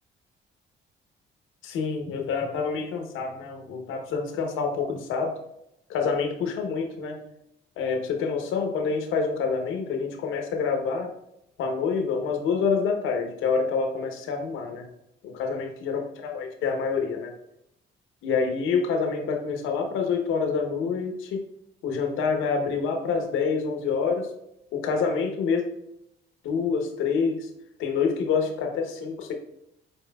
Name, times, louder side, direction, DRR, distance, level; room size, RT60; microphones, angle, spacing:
voice 1, 1.6-5.3 5.9-7.2 7.8-11.1 11.6-14.9 15.2-17.3 18.2-21.4 21.8-24.3 24.7-25.6 26.4-27.5 27.8-29.3, left 5 dB, 90° left, 4 dB, 0.8 m, -27 dB
5.3 x 4.4 x 2.2 m, 0.80 s
cardioid pair, 90°, 20 cm